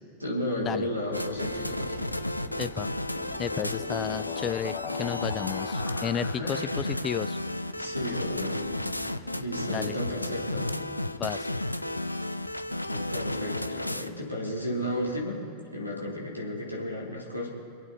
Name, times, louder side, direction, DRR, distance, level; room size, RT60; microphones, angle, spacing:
voice 1, 0.2-2.0 6.4-6.6 7.8-8.6 9.3-10.7 12.8-15.4 15.7-17.5, left 1 dB, 90° right, -3 dB, 3.4 m, -33 dB
sound 1, 0.9-15.3, right 3 dB, 50° right, 1.6 m, -48 dB
sound 2, 1.1-14.1, left 1 dB, 85° left, 0.6 m, -33 dB
sound 3, 2.5-7.3, left 11 dB, 45° left, 0.9 m, -41 dB
voice 2, 3.4-7.4 9.7-10.0 11.2-11.5, left 9 dB, 25° left, 14 dB, 0.4 m, -32 dB
26.5 x 9.0 x 4.2 m, 2.7 s
figure-of-eight pair, 90°, 0 cm